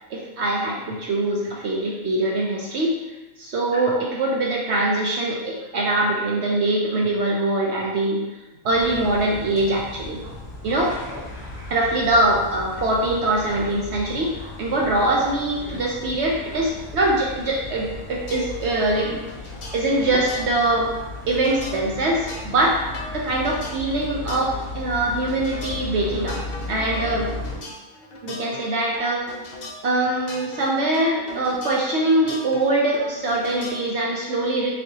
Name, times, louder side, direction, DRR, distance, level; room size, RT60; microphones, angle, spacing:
voice 1, 0.1-3.0 3.4-8.2 8.6-10.2 10.6-11.0 11.7-14.3 14.6-19.3 19.7-20.9 21.3-26.4 26.7-27.3 28.2-29.2 29.8-34.7, right 2 dB, 65° right, -2 dB, 0.8 m, -23 dB
sound 1, 8.7-27.6, left 3 dB, 20° left, 1.1 m, -36 dB
sound 2, 17.9-33.9, left 2 dB, 50° left, 0.5 m, -39 dB
4.2 x 3.4 x 2.8 m, 1.1 s
omnidirectional pair, 1.5 m